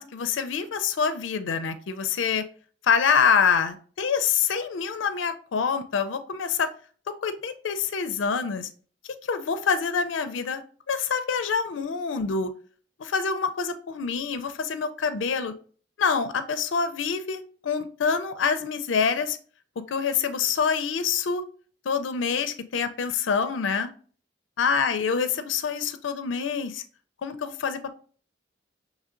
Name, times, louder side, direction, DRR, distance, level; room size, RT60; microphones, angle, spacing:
voice 1, 0.0-2.4 2.8-6.7 7.1-8.7 9.2-10.6 10.9-12.5 13.0-15.5 16.0-19.4 19.8-21.4 21.9-23.9 24.6-26.8 27.2-27.9, left 6 dB, 85° left, 10 dB, 0.4 m, -26 dB
6.4 x 3.1 x 2.5 m, 0.43 s
head